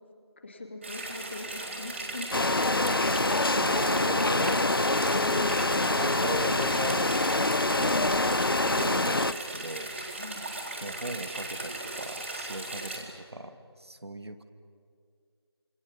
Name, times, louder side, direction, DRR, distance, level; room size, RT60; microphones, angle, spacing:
voice 1, 0.4-3.6 5.1-5.7 7.8-8.2 10.1-10.5, left 2 dB, 25° left, 4 dB, 2.3 m, -40 dB
sound 1, 0.8-13.0, right 2 dB, 30° right, 4.0 m, -38 dB
sound 2, 2.3-9.3, left 2 dB, 55° left, 0.8 m, -25 dB
voice 2, 3.6-4.7 5.2-9.9 10.8-14.4, right 1 dB, 70° right, 8 dB, 2.3 m, -39 dB
28.0 x 25.0 x 7.3 m, 2.2 s
figure-of-eight pair, 170°, 14 cm